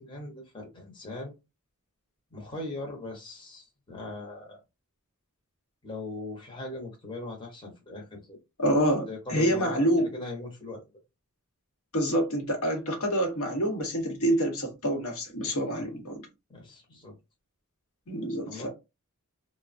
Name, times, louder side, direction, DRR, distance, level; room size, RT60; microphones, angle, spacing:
voice 1, 0.0-1.4 2.3-4.6 5.8-8.4 9.1-10.8 16.5-17.1 18.4-18.7, left 2 dB, 20° left, 0.8 m, -40 dB
voice 2, 8.6-10.2 11.9-16.2 18.1-18.7, equal, 75° left, 1.0 m, -27 dB
3.1 x 2.1 x 2.5 m
head